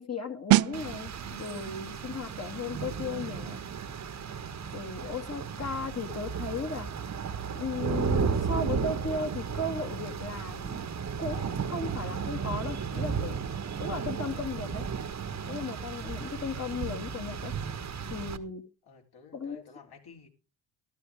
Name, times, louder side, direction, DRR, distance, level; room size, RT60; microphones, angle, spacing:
voice 1, 0.0-3.6 4.7-6.9 7.5-10.8 11.2-13.4 13.8-14.9 15.5-17.5 18.1-18.6 19.3-19.6, left 3 dB, 30° left, 2.3 m, -36 dB
sound 1, 0.5-11.0 11.3-11.5, right 18 dB, 50° right, 0.5 m, -34 dB
Rain, 0.7-18.4, right 6 dB, 35° right, 1.4 m, -34 dB
voice 2, 5.0-5.3 5.8-6.0 18.8-20.3, left 5 dB, 50° left, 4.0 m, -54 dB
13.0 x 12.5 x 3.6 m
supercardioid pair, 70°, 49 cm